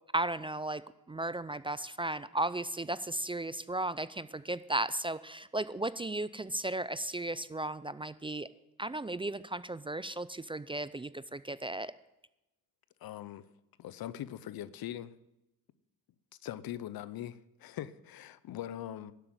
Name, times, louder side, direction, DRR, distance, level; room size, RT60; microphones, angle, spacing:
voice 1, 0.1-0.8 1.1-8.5 8.8-11.9, right 2 dB, 15° right, 15 dB, 0.5 m, -35 dB
voice 2, 13.0-13.5 13.8-15.1 16.4-19.1, left 12 dB, 70° left, 16 dB, 0.8 m, -41 dB
12.0 x 8.2 x 8.0 m, 0.90 s
cardioid pair, 85°, 37 cm